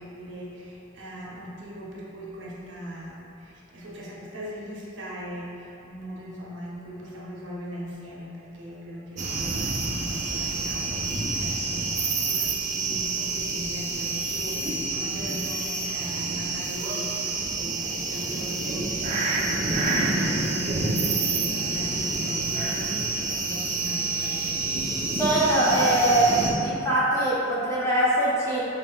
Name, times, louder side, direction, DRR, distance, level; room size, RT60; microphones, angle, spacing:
voice 1, 0.0-24.7, equal, 70° right, -5 dB, 0.8 m, -39 dB
sound 1, 9.2-26.5, right 3 dB, 40° right, 0.4 m, -28 dB
voice 2, 25.2-28.6, right 1 dB, 15° left, -9 dB, 0.8 m, -22 dB
5.5 x 2.9 x 2.3 m, 2.9 s
head